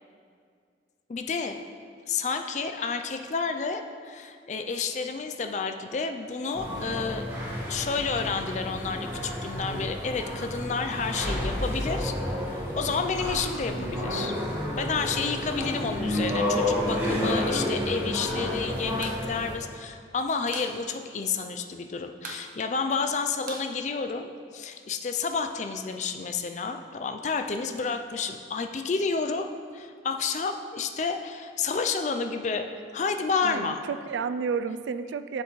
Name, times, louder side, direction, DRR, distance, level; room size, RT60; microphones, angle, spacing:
voice 1, 1.1-1.6 2.1-7.2 7.7-14.3 14.8-29.5 29.7-33.8, left 5 dB, 40° left, 6 dB, 0.4 m, -30 dB
sound 1, 6.5-19.5, left 1 dB, 10° right, 1.3 m, -30 dB
sound 2, 19.0-19.2 19.5-19.6 19.9-20.8 21.1-21.2 21.4-21.8 22.2-24.6, right 4 dB, 45° right, 0.7 m, -42 dB
voice 2, 33.4-35.4, right 5 dB, 75° right, 11 dB, 0.3 m, -31 dB
7.8 x 7.1 x 3.1 m, 2.2 s
head